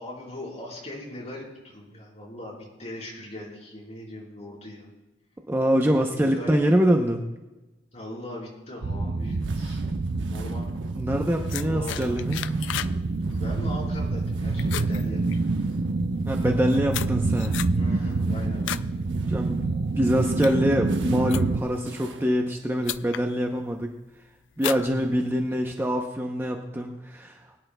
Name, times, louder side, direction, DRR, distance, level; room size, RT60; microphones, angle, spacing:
voice 1, 0.0-4.9 6.1-6.6 7.9-9.8 10.3-10.7 11.6-12.2 13.3-15.2 17.7-18.8, left 1 dB, 40° left, -4 dB, 4.2 m, -39 dB
voice 2, 5.5-7.2 11.0-12.4 16.2-17.6 19.3-19.6 20.0-23.9 24.6-27.5, equal, 10° right, 2 dB, 0.6 m, -24 dB
sound 1, 8.8-21.6, right 3 dB, 55° right, 0.5 m, -27 dB
sound 2, 9.2-16.8 17.1-22.3, right 2 dB, 90° right, 1.0 m, -48 dB
sound 3, 11.5-13.0 13.3-13.6 14.0-14.3 14.6-15.8 16.4-18.9 19.3-19.6 20.2-21.8 22.5-22.6 22.8-23.3 23.7-24.1 24.6-25.5, left 12 dB, 85° left, 0.3 m, -35 dB
21.5 x 10.0 x 2.2 m, 1.1 s
head